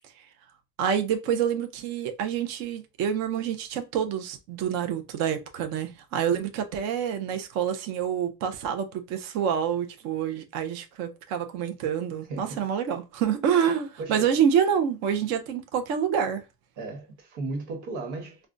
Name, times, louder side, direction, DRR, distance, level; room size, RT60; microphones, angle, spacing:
voice 1, 0.8-16.4, right 8 dB, 35° right, 0.4 m, -27 dB
voice 2, 12.3-12.6 14.0-14.3 16.8-18.5, right 3 dB, 75° right, 1.2 m, -35 dB
4.8 x 2.2 x 2.5 m
cardioid pair, 165°, 46 cm